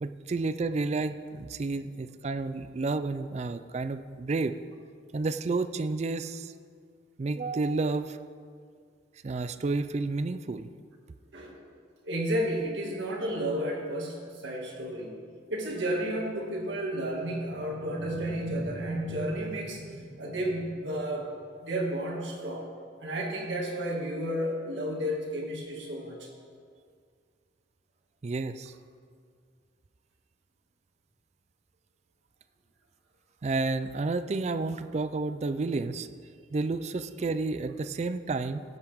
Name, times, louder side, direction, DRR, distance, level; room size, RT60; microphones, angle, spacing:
voice 1, 0.0-4.6 5.1-6.5 7.2-8.2 9.2-10.7 28.2-28.7 33.4-36.1 36.5-38.6, right 3 dB, 35° right, 11 dB, 0.3 m, -30 dB
voice 2, 11.3-11.7 12.0-15.1 15.5-21.3 21.6-22.7 23.0-26.3, right 1 dB, 80° right, -2 dB, 2.1 m, -32 dB
16.5 x 7.9 x 3.6 m, 2.1 s
head